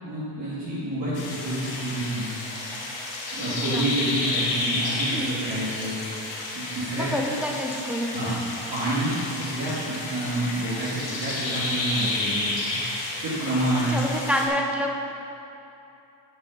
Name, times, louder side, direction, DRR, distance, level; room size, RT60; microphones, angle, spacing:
voice 1, 0.0-2.4 3.3-6.0 6.5-7.1 8.1-8.3 8.7-12.5 13.2-13.9, right 1 dB, 50° right, -10 dB, 2.1 m, -28 dB
sound 1, 1.1-14.5, left 2 dB, 75° left, 2.2 m, -31 dB
voice 2, 6.9-8.4 13.9-15.0, equal, 5° right, 0 dB, 0.9 m, -27 dB
8.8 x 5.6 x 5.4 m, 2.8 s
cardioid pair, 90°, 45 cm